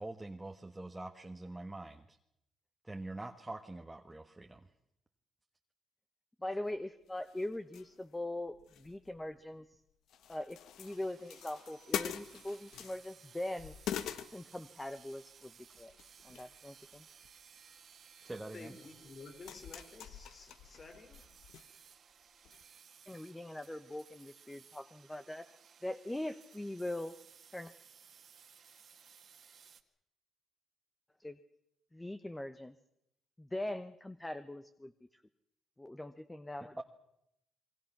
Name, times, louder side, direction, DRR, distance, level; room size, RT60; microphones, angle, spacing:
voice 1, 0.0-2.2 2.8-4.7 18.2-18.8 36.8-36.9, right 2 dB, 10° right, 4 dB, 1.3 m, -44 dB
voice 2, 6.4-9.7 10.3-13.7 14.3-15.5 15.8-15.9 16.2-17.0 23.1-25.4 25.8-27.1 27.5-27.7 31.2-31.4 31.9-32.7 33.4-34.9 35.8-36.8, left 1 dB, 10° left, 10 dB, 0.9 m, -41 dB
sound 1, 6.7-6.8 7.2-8.2 8.5-9.8 10.1-13.3 13.6-15.0 15.7-16.6 16.9-17.4 18.4-18.5 19.0-21.6 21.9-22.0 22.4-22.6, left 9 dB, 80° left, 1.1 m, -44 dB
sound 2, 10.8-29.8, right 7 dB, 55° right, 1.9 m, -60 dB
voice 3, 18.5-21.2, left 3 dB, 40° left, 6 dB, 4.3 m, -52 dB
28.5 x 22.0 x 6.0 m, 0.81 s
cardioid pair, 90°, 0 cm